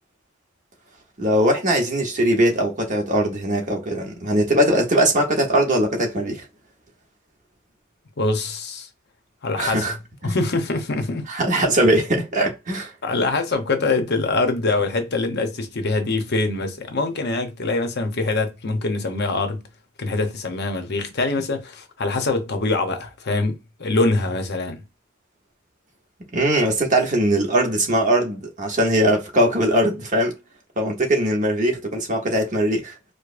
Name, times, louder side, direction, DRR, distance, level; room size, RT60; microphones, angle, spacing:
voice 1, 1.2-6.4 9.6-9.9 10.2-10.3 11.3-12.9 26.3-30.4 30.8-32.9, right 1 dB, 35° right, 1.0 m, -20 dB
voice 2, 8.2-8.9 9.4-9.9 10.2-11.3 13.0-19.6 20.0-24.8, left 3 dB, 50° left, 0.7 m, -24 dB
4.8 x 2.1 x 2.5 m
head